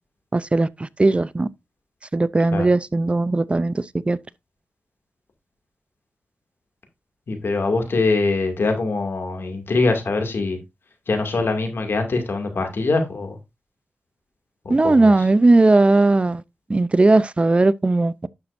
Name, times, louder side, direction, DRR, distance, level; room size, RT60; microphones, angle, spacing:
voice 1, 0.3-1.5 2.1-4.2 14.7-16.4 16.7-18.3, right 2 dB, 30° right, 0.5 m, -18 dB
voice 2, 7.3-10.6 11.1-13.4 14.6-15.1, left 3 dB, 65° left, 2.3 m, -23 dB
11.0 x 6.1 x 2.6 m
cardioid pair, 65°, 4 cm